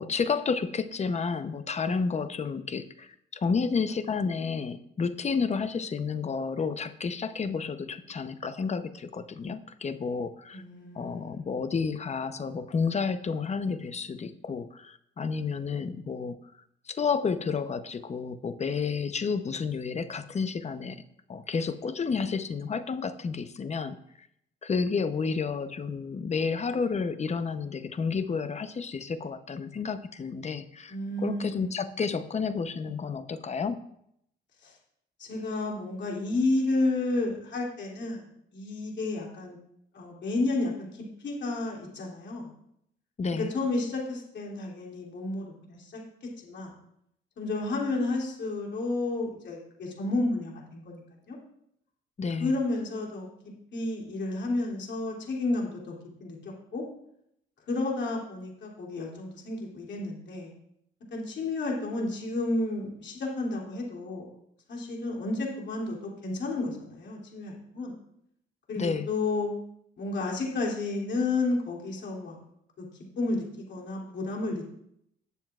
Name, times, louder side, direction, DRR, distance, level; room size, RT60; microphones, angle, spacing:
voice 1, 0.0-10.6 10.9-16.4 16.9-21.0 21.3-24.3 24.6-30.9 31.2-33.8 43.2-43.5 52.2-52.5 68.8-69.1, left 5 dB, 35° left, 11 dB, 0.8 m, -31 dB
voice 2, 10.5-11.5 30.9-31.9 34.6-34.7 35.2-38.2 38.5-39.6 39.9-42.5 43.4-46.0 46.4-46.7 47.4-51.0 51.3-51.4 52.4-53.3 53.7-55.9 56.2-56.8 57.7-60.5 61.1-64.3 64.7-67.9 68.7-69.5 70.0-72.4 72.8-72.9 73.2-74.7, left 2 dB, 60° left, -2 dB, 2.9 m, -31 dB
19.5 x 7.0 x 2.4 m, 0.73 s
cardioid pair, 90°, 20 cm